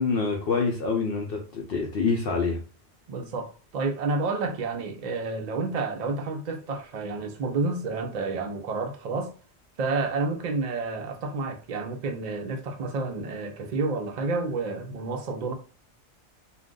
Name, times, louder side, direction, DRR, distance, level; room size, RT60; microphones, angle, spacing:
voice 1, 0.0-2.6, left 4 dB, 60° left, 0.7 m, -26 dB
voice 2, 3.1-9.3 9.8-15.5, right 3 dB, 60° right, 0.4 m, -30 dB
2.5 x 2.2 x 3.6 m
omnidirectional pair, 1.2 m